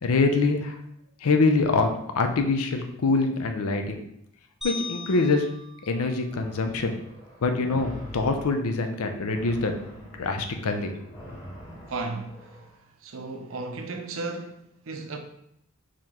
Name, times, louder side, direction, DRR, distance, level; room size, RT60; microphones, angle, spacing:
voice 1, 0.0-0.8 1.2-4.0 4.6-5.5 5.8-6.9 7.4-9.7 10.2-10.9, left 3 dB, 80° left, 0.6 m, -24 dB
sound 1, 4.6-7.0, left 3 dB, ahead, 0.5 m, -40 dB
sound 2, 6.3-12.8, equal, 15° left, 1.2 m, -44 dB
voice 2, 11.9-12.6 13.0-15.2, right 3 dB, 65° right, 0.6 m, -35 dB
4.9 x 2.9 x 3.6 m
head